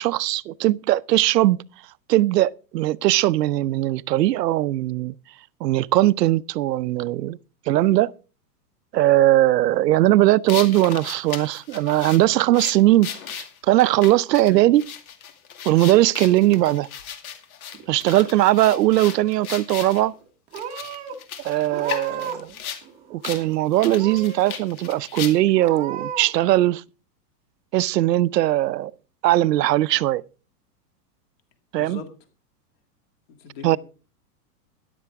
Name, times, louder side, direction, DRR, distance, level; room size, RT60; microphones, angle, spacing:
voice 1, 0.0-1.6 2.1-5.1 5.6-7.4 7.7-8.1 8.9-14.9 15.6-16.9 17.9-20.1 21.4-22.5 23.1-26.8 27.7-28.9 29.2-30.2 31.7-32.0 33.6-33.8, right 15 dB, 85° right, 0.7 m, -19 dB
sound 1, 10.5-20.0 20.5-22.8 23.2-23.4 23.7-25.6, left 8 dB, 60° left, 2.3 m, -36 dB
Purr / Meow, 17.7-18.6 18.9-19.5 20.1-20.3 20.5-21.2 21.7-22.5 22.8-23.5 24.0-24.6 25.0-25.1 25.6-26.3, right 7 dB, 15° right, 0.9 m, -35 dB
voice 2, 31.8-32.1 33.3-33.8, left 5 dB, 40° left, 2.2 m, -41 dB
13.5 x 11.0 x 3.5 m
supercardioid pair, 175°, 48 cm